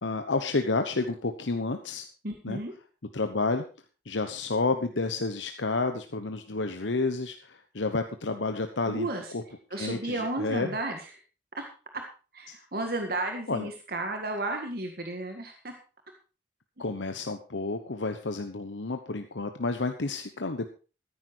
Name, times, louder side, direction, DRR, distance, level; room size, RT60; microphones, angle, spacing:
voice 1, 0.0-2.1 2.4-2.6 3.1-3.6 4.0-9.1 9.3-9.4 9.8-10.7 12.5-12.6 13.5-13.7 16.8-20.7, left 3 dB, 80° left, 7 dB, 1.0 m, -30 dB
voice 2, 2.2-2.7 8.9-9.3 9.7-11.1 11.5-11.7 12.3-15.7 16.8-16.9, right 2 dB, 55° right, 4 dB, 1.8 m, -33 dB
14.0 x 10.5 x 4.6 m, 0.35 s
head